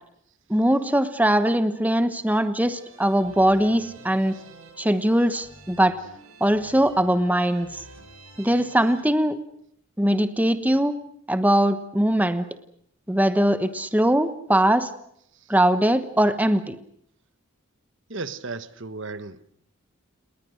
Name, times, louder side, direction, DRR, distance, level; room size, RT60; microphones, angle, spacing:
voice 1, 0.5-4.3 4.8-6.0 6.4-7.8 8.4-9.4 10.0-10.9 11.3-12.5 13.1-14.9 15.5-16.8, right 1 dB, 5° right, 1.1 m, -21 dB
sound 1, 2.7-9.0, right 3 dB, 80° right, 7.7 m, -48 dB
voice 2, 18.1-19.5, right 3 dB, 60° right, 1.3 m, -35 dB
29.5 x 21.0 x 6.4 m
head